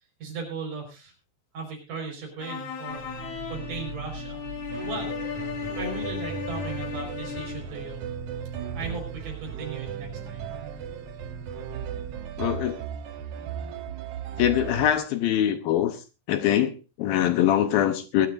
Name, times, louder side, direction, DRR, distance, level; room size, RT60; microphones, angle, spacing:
voice 1, 0.2-1.1 1.5-3.1 3.5-4.4 4.8-5.1 5.7-8.0 8.7-10.5, right 4 dB, 55° right, 6.2 m, -37 dB
sound 1, 2.4-7.8, left 7 dB, 55° left, 3.0 m, -35 dB
sound 2, 2.9-12.2, right 4 dB, 30° right, 5.9 m, -41 dB
sound 3, 4.7-14.9, right 8 dB, 70° right, 1.9 m, -37 dB
voice 2, 12.4-12.8 14.4-16.0 16.3-18.3, left 11 dB, 75° left, 2.5 m, -23 dB
21.5 x 12.5 x 2.6 m
omnidirectional pair, 4.6 m